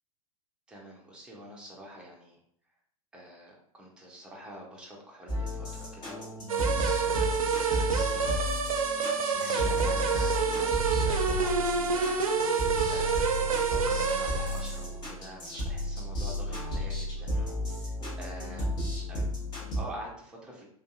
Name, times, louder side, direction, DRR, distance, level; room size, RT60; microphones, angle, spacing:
voice 1, 0.7-2.4 3.1-6.4 6.7-8.4 9.2-12.2 12.9-13.3 13.6-17.5 18.1-18.7 19.1-20.7, right 1 dB, 5° right, -2 dB, 0.5 m, -46 dB
sound 1, 5.3-19.8, left 1 dB, 25° left, 0.9 m, -33 dB
sound 2, 6.5-14.8, right 5 dB, 65° right, 0.4 m, -28 dB
2.5 x 2.3 x 2.4 m, 0.65 s
figure-of-eight pair, 90°, 19 cm